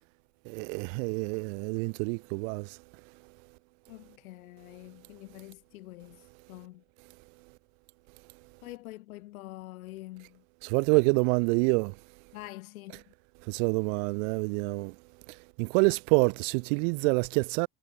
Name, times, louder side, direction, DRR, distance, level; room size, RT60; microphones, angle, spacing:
voice 1, 0.5-2.8 10.6-12.0 13.5-14.9 15.3-17.7, right 35 dB, 60° right, 0.7 m, -27 dB
voice 2, 3.9-6.2 6.5-6.8 8.6-10.4 12.3-13.0, left 18 dB, 75° left, 1.2 m, -45 dB
figure-of-eight pair, 65°, 43 cm